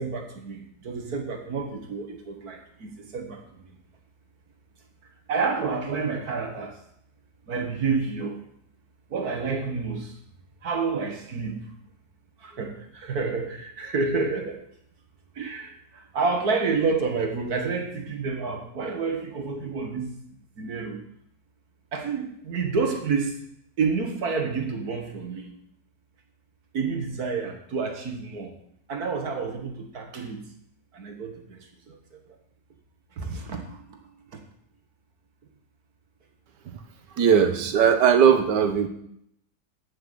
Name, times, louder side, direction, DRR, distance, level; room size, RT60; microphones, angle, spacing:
voice 1, 0.0-3.6 5.3-6.8 7.5-8.4 9.1-10.1 10.6-11.7 12.4-14.6 15.4-20.1 20.6-21.0 21.9-23.4 23.8-25.5 26.7-28.6 28.9-30.4 30.9-32.0 33.2-34.0, right 4 dB, 60° right, 4 dB, 1.9 m, -29 dB
voice 2, 37.2-38.9, right 7 dB, 80° right, 8 dB, 1.7 m, -19 dB
8.9 x 7.7 x 6.8 m, 0.72 s
omnidirectional pair, 1.8 m